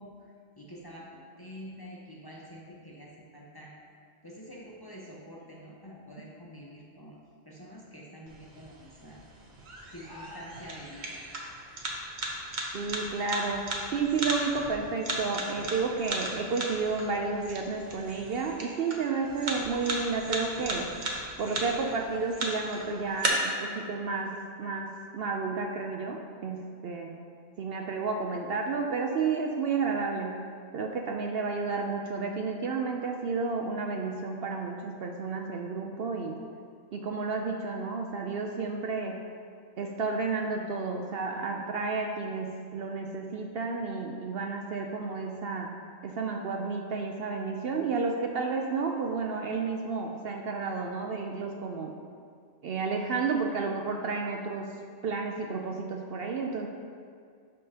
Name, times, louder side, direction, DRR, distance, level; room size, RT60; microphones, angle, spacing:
voice 1, 0.0-3.7 4.2-7.2 7.4-9.2 9.9-11.2, equal, 20° left, -4 dB, 0.8 m, -47 dB
sound 1, 8.3-23.3, right 2 dB, 40° right, 1.0 m, -37 dB
voice 2, 12.7-20.9 21.4-27.2 27.6-30.4 30.7-36.4 36.9-39.2 39.8-45.7 46.0-51.9 52.6-54.7 55.0-56.7, right 4 dB, 60° right, 2 dB, 0.7 m, -31 dB
12.0 x 5.3 x 2.8 m, 2.2 s
omnidirectional pair, 1.2 m